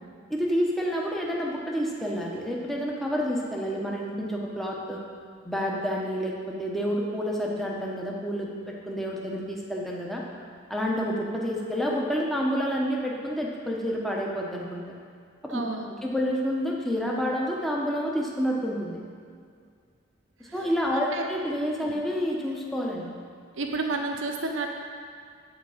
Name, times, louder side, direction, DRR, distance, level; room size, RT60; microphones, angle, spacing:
voice 1, 0.3-5.0 5.4-10.2 10.7-14.8 15.4-15.6 16.0-19.0 20.5-23.1, equal, ahead, -3 dB, 1.0 m, -29 dB
voice 2, 15.5-15.9 20.9-21.2 23.6-24.7, right 3 dB, 80° right, 2 dB, 0.9 m, -30 dB
10.5 x 4.6 x 7.3 m, 2.1 s
head